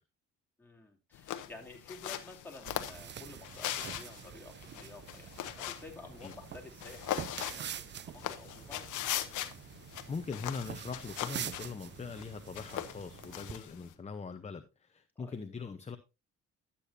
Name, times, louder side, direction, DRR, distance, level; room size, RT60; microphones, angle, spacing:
voice 1, 0.6-8.9 15.2-15.4, left 3 dB, 5° left, 2.9 m, -51 dB
sound 1, 1.1-13.9, left 12 dB, 85° left, 0.9 m, -41 dB
sound 2, 2.7-13.6, right 9 dB, 40° right, 0.4 m, -46 dB
voice 2, 10.1-16.0, left 5 dB, 20° left, 0.8 m, -41 dB
12.0 x 8.5 x 2.6 m
cardioid pair, 90°, 30 cm